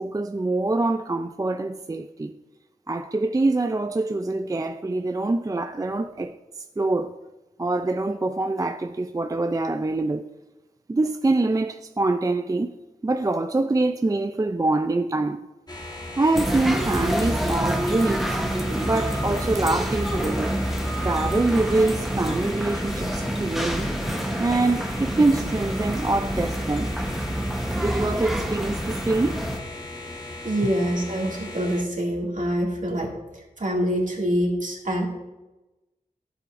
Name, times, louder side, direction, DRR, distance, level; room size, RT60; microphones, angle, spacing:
voice 1, 0.0-2.3 2.9-6.4 6.8-7.2 7.6-10.3 10.9-12.7 13.0-15.5 16.2-18.4 18.8-20.6 21.0-23.9 24.4-26.9 27.8-29.4, right 2 dB, 25° right, 0.4 m, -24 dB
sound 1, 15.7-31.8, left 2 dB, 25° left, 1.6 m, -37 dB
sound 2, 16.3-29.6, right 1 dB, ahead, 1.0 m, -27 dB
voice 2, 30.4-33.1 33.3-35.1, equal, 60° right, 2.3 m, -25 dB
11.5 x 7.6 x 2.5 m
wide cardioid pair, 50°, 15 cm